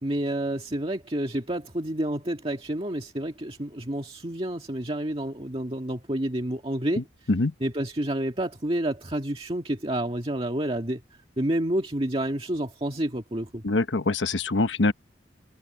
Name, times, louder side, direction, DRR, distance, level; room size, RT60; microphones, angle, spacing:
voice 1, 0.0-7.0 7.6-11.0 11.4-13.6, right 1 dB, 30° right, 1.9 m, -29 dB
voice 2, 13.6-14.9, left 2 dB, 85° left, 1.1 m, -24 dB
head